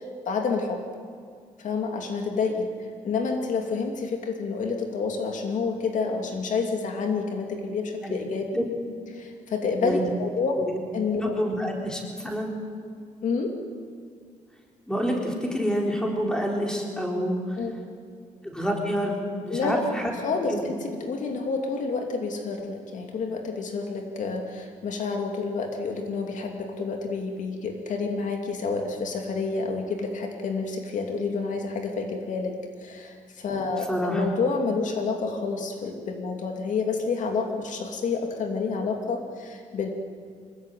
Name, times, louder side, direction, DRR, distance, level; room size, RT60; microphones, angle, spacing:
voice 1, 0.3-0.8 1.6-2.7 3.0-8.5 9.1-10.5 10.9-11.3 13.2-13.5 17.6-17.7 19.5-19.8 20.2-39.9, left 4 dB, 70° left, 3 dB, 2.7 m, -29 dB
voice 2, 11.2-12.5 14.9-17.6 18.4-19.2 19.4-20.1 20.5-20.6 33.9-34.2, equal, 5° left, 0 dB, 4.1 m, -27 dB
24.5 x 21.0 x 9.2 m, 2.1 s
wide cardioid pair, 150°, 13 cm